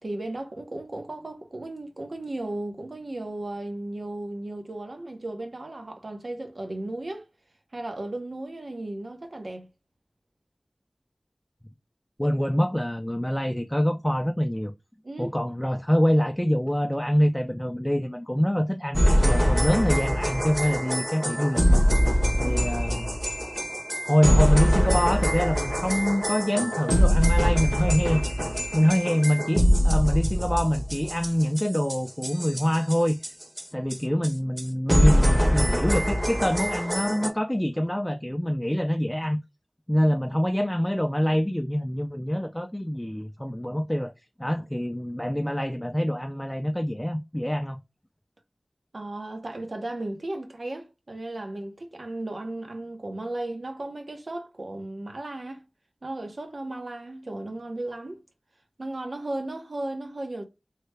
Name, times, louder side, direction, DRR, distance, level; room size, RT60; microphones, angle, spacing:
voice 1, 0.0-7.3 7.7-9.6 15.0-15.4 22.3-22.6 48.9-55.6 56.0-58.2 58.8-60.4, right 2 dB, 70° right, 0.8 m, -35 dB
voice 2, 12.2-14.7 15.2-21.8 22.4-23.1 24.0-33.3 33.7-39.4 39.9-44.1 44.4-47.8, equal, 10° left, 0.3 m, -25 dB
sound 1, 18.9-33.6 33.9-34.0 34.2-34.3 34.6-34.7 34.9-37.3, equal, 15° right, 0.7 m, -23 dB
3.2 x 2.1 x 3.2 m
wide cardioid pair, 60°, 0 cm